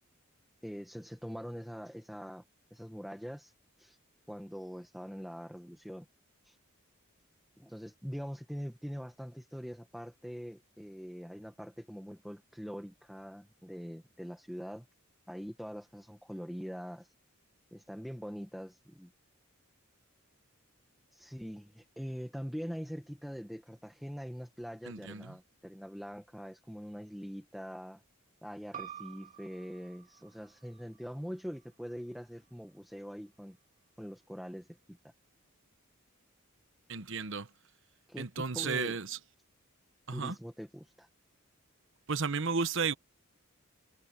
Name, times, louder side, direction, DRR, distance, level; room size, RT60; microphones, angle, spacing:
voice 1, 0.6-2.4 2.7-3.5 3.8-4.0 4.3-6.1 6.4-6.6 7.6-14.9 15.3-17.1 17.7-19.1 21.1-28.0 28.4-33.6 34.0-35.1 38.1-39.0 40.1-41.1, equal, ahead, 1.6 m, -43 dB
voice 2, 24.9-25.4 36.9-37.5 38.2-39.2 40.1-40.3 42.1-42.9, right 5 dB, 60° right, 1.0 m, -33 dB
sound 1, 28.7-33.9, right 9 dB, 40° right, 3.4 m, -52 dB
head